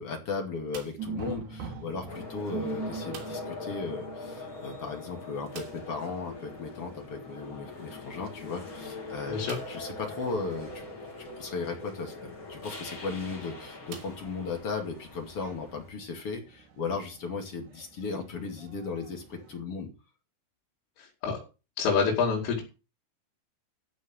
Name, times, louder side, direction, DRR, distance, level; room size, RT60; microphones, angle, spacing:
voice 1, 0.0-10.9 11.2-19.9, left 4 dB, 40° left, 3 dB, 2.2 m, -36 dB
sound 1, 0.7-1.2 3.1-3.6 3.9-4.0 4.3-4.4 5.5-6.1 7.8-7.9 8.5-8.6 9.4-9.9 10.7-10.8 12.8-13.0 13.9-14.8, right 7 dB, 80° right, 5.0 m, -47 dB
sound 2, 1.0-19.6, right 5 dB, 50° right, 2.7 m, -45 dB
sound 3, 2.1-15.9, left 2 dB, 20° left, 2.9 m, -42 dB
voice 2, 21.0-21.4 21.8-22.6, left 5 dB, 80° left, -3 dB, 5.6 m, -27 dB
14.0 x 5.2 x 7.6 m, 0.32 s
omnidirectional pair, 5.7 m